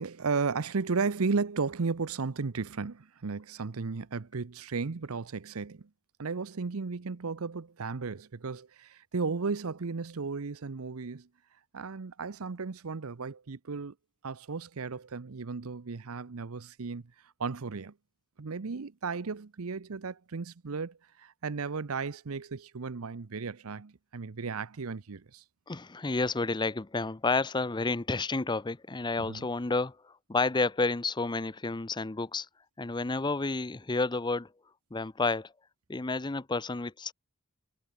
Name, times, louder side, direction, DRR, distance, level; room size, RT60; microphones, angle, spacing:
voice 1, 0.0-5.9 6.2-11.3 11.7-13.9 14.2-17.0 17.4-17.9 18.4-25.4 29.3-29.5, right 4 dB, 85° right, 0.7 m, -34 dB
voice 2, 25.7-32.5 32.8-34.5 34.9-35.5 35.9-37.1, left 3 dB, 20° left, 0.6 m, -30 dB
head